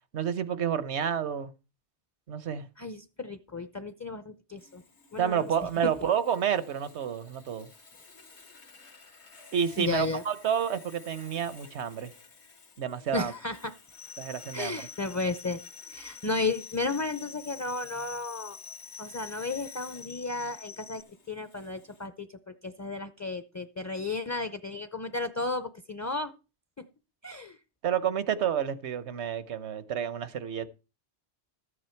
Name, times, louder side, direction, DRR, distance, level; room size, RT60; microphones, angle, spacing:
voice 1, 0.1-1.5 2.3-2.7 5.2-7.7 9.5-12.1 12.8-13.3 14.2-14.8 27.8-30.7, right 8 dB, 85° right, 1.2 m, -29 dB
voice 2, 2.8-4.8 5.1-5.9 9.8-10.2 13.1-13.7 14.5-15.6 15.9-18.6 19.0-21.0 21.3-26.3 26.8-26.9 27.2-27.6, left 3 dB, 20° left, 0.4 m, -33 dB
Sawing, 4.6-22.1, left 4 dB, 80° left, 1.8 m, -54 dB
sound 1, 13.9-21.0, left 6 dB, 55° left, 1.1 m, -46 dB
13.5 x 8.6 x 4.5 m
omnidirectional pair, 1.1 m